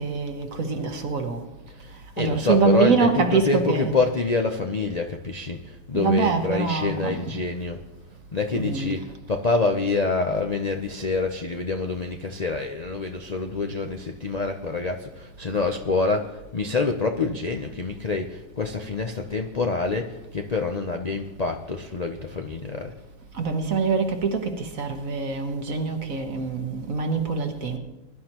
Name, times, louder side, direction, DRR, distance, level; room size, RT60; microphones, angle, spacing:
voice 1, 0.0-1.4 2.2-3.9 5.9-7.2 8.5-9.1 23.3-27.8, right 4 dB, 55° right, 1.7 m, -24 dB
voice 2, 1.7-7.8 8.3-22.9, left 3 dB, 55° left, 0.4 m, -26 dB
21.5 x 11.5 x 3.0 m
omnidirectional pair, 1.8 m